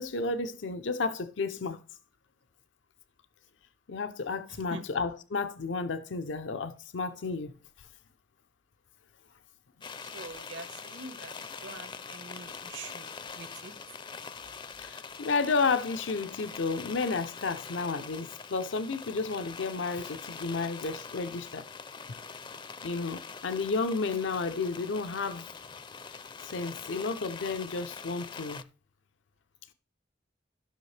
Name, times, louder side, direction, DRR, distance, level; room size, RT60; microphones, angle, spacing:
voice 1, 0.0-1.8 3.9-7.5 7.8-7.9 14.8-21.7 22.8-25.5 26.4-28.6, left 4 dB, 85° left, 0.6 m, -32 dB
sound 1, 9.8-28.6, left 5 dB, 25° left, 0.4 m, -44 dB
voice 2, 10.0-11.3 11.6-13.7, right 3 dB, 80° right, 1.3 m, -44 dB
13.5 x 6.3 x 3.3 m
head